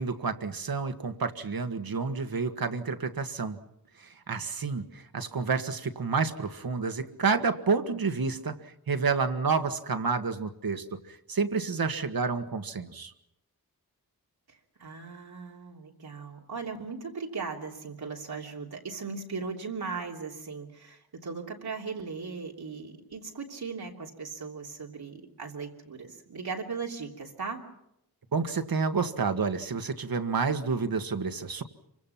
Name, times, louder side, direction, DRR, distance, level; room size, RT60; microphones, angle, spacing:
voice 1, 0.0-3.6 4.0-13.1 28.3-31.6, right 5 dB, 70° right, 8 dB, 1.8 m, -29 dB
voice 2, 14.5-27.6, right 5 dB, 85° right, -1 dB, 3.2 m, -38 dB
28.0 x 25.0 x 5.9 m, 0.82 s
wide cardioid pair, 75°, 37 cm